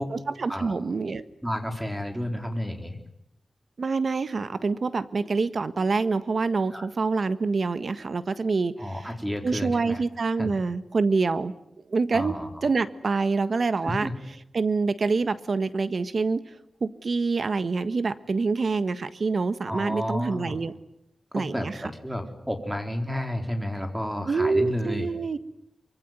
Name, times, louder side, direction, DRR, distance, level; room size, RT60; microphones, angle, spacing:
voice 1, 0.1-1.2 3.8-8.8 9.4-11.5 11.9-12.4 12.6-14.1 14.5-16.5 16.8-20.7 21.3-21.7 24.3-25.4, right 4 dB, 65° right, 13 dB, 1.5 m, -26 dB
voice 2, 1.4-3.0 6.7-6.9 8.8-10.0 10.4-10.5 12.1-12.5 13.8-14.1 19.7-20.6 21.3-25.1, equal, 5° right, 5 dB, 4.3 m, -31 dB
24.5 x 24.0 x 9.6 m, 0.78 s
wide cardioid pair, 85°, 0 cm